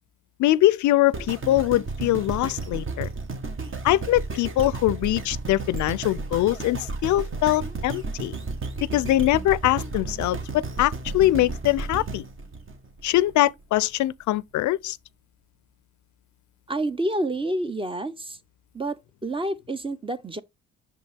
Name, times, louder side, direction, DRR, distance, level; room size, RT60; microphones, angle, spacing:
voice 1, 0.4-3.1 3.8-8.4 8.9-12.2 13.0-15.0, left 15 dB, 70° left, 0.4 m, -22 dB
sound 1, 1.1-13.3 13.9-14.0, right 3 dB, 40° right, 1.3 m, -33 dB
voice 2, 16.7-18.4 18.7-20.4, right 1 dB, 15° right, 0.6 m, -28 dB
6.4 x 5.3 x 3.4 m
cardioid pair, 90°, 30 cm